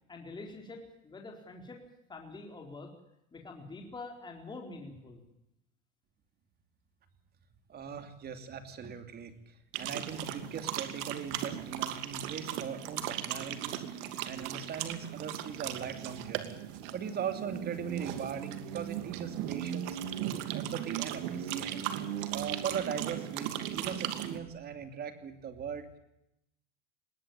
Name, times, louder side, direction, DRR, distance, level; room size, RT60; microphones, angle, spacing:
voice 1, 0.1-1.8 2.1-2.9 3.3-5.2, left 3 dB, 15° left, 2 dB, 4.2 m, -45 dB
voice 2, 7.7-16.5 16.9-20.0 20.5-21.9 22.3-26.0, right 7 dB, 25° right, 9 dB, 2.8 m, -40 dB
sound 1, 9.7-24.4, right 11 dB, 60° right, 2.7 m, -37 dB
21.0 x 18.0 x 8.9 m, 0.82 s
supercardioid pair, 150°, 35 cm